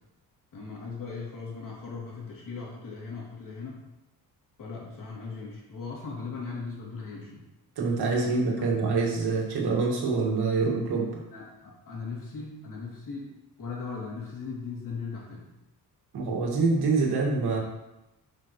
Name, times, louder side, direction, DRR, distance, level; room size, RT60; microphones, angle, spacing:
voice 1, 0.5-3.8 4.6-7.4 8.2-8.4 11.3-13.3 13.6-15.5, left 4 dB, 55° left, -4 dB, 2.9 m, -38 dB
voice 2, 7.8-11.2 16.1-17.6, right 4 dB, 70° right, -1 dB, 2.1 m, -26 dB
10.5 x 5.7 x 3.2 m, 0.95 s
cardioid pair, 120°, 39 cm